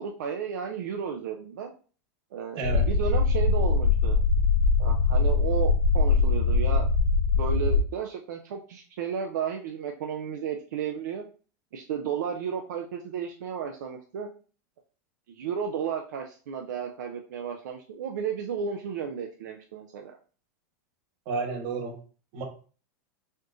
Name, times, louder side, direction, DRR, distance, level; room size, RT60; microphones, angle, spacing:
voice 1, 0.0-1.7 2.3-4.2 4.8-6.9 7.4-11.2 11.7-14.3 15.3-20.2, right 7 dB, 80° right, 3 dB, 0.5 m, -33 dB
voice 2, 2.5-2.9 21.3-22.0 22.3-22.4, right 4 dB, 50° right, 4 dB, 1.1 m, -31 dB
sound 1, 2.6-7.8, left 4 dB, 85° left, 0.5 m, -22 dB
4.3 x 3.0 x 2.5 m, 0.39 s
supercardioid pair, 135°, 9 cm